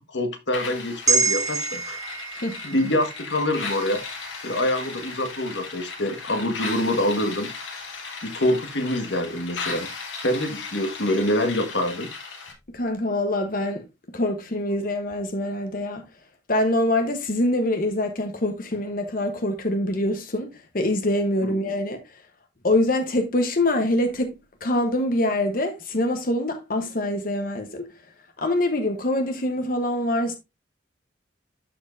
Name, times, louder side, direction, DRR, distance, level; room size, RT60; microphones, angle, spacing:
voice 1, 0.0-2.0 2.6-4.0 4.4-7.5 8.2-9.9 10.2-12.1 21.4-21.5, left 1 dB, 70° left, 1.5 m, -25 dB
sound 1, 0.5-12.5, left 4 dB, 90° left, 2.4 m, -36 dB
sound 2, 1.1-5.6 6.0-6.1, right 4 dB, 20° right, 1.0 m, -28 dB
voice 2, 12.7-13.8 14.1-16.0 16.5-22.0 22.6-27.9 28.4-30.4, left 1 dB, 50° left, 1.0 m, -24 dB
12.5 x 4.5 x 2.6 m
head